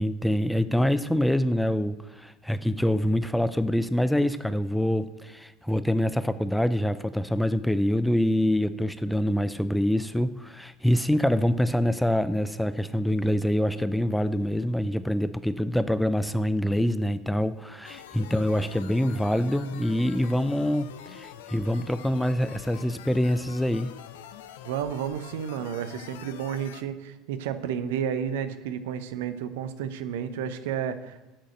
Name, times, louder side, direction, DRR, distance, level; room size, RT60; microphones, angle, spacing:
voice 1, 0.0-23.9, equal, 5° left, 13 dB, 0.5 m, -25 dB
sound 1, 17.8-26.8, left 10 dB, 70° left, 0.6 m, -45 dB
voice 2, 24.6-31.2, right 8 dB, 70° right, 11 dB, 0.8 m, -31 dB
7.8 x 6.4 x 7.7 m, 1.1 s
hypercardioid pair, 75°, 0 cm